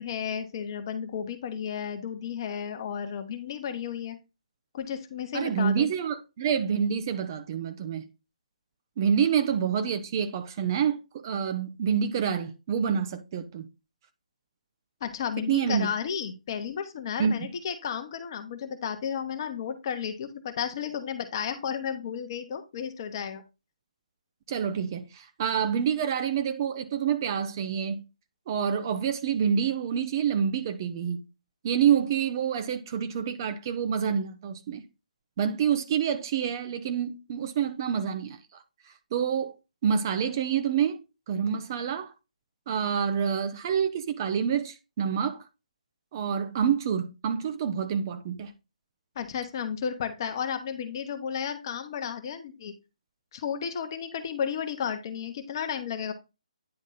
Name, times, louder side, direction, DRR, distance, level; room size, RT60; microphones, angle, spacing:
voice 1, 0.0-4.2 4.7-5.9 15.0-23.4 49.2-52.7 53.3-56.1, left 7 dB, 35° left, 1.0 m, -33 dB
voice 2, 5.3-8.1 9.0-13.7 15.4-15.9 17.2-17.3 24.5-28.0 28.5-31.2 31.6-34.8 35.4-38.6 39.1-39.6 39.8-41.0 41.3-42.1 42.7-45.4 46.1-48.5, right 7 dB, 30° right, 0.6 m, -27 dB
9.5 x 3.6 x 4.0 m
figure-of-eight pair, 140°, 4 cm